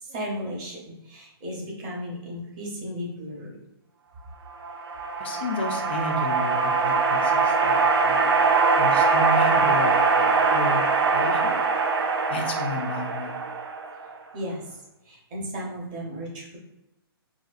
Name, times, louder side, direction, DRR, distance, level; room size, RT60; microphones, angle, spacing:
voice 1, 0.0-3.6 14.3-14.8 15.1-16.6, equal, 20° right, -3 dB, 0.8 m, -35 dB
sound 1, 4.6-14.2, right 4 dB, 85° right, 0.5 m, -22 dB
voice 2, 5.2-8.5 8.7-11.6 12.3-13.4, left 2 dB, 25° left, 3 dB, 0.4 m, -32 dB
4.1 x 2.3 x 2.5 m, 0.91 s
hypercardioid pair, 170°, 13 cm